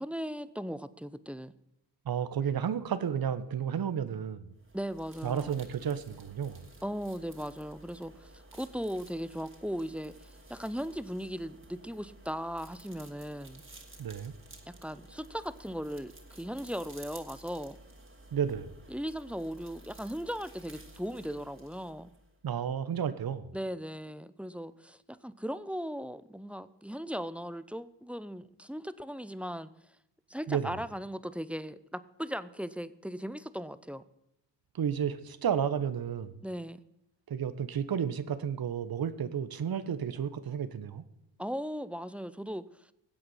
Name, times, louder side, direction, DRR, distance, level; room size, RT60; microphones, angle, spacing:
voice 1, 0.0-1.5 4.7-5.6 6.8-13.6 14.8-17.8 18.9-22.1 23.5-29.7 30.3-34.0 36.4-36.8 41.4-42.6, equal, 5° right, 0.6 m, -38 dB
voice 2, 2.0-4.5 5.2-6.7 14.0-14.3 18.3-18.7 22.4-23.5 30.5-30.7 34.7-36.4 37.3-41.0, right 8 dB, 50° right, 1.2 m, -32 dB
sound 1, 4.6-22.4, right 1 dB, 25° right, 2.7 m, -53 dB
17.5 x 7.9 x 5.6 m
hypercardioid pair, 45°, 47 cm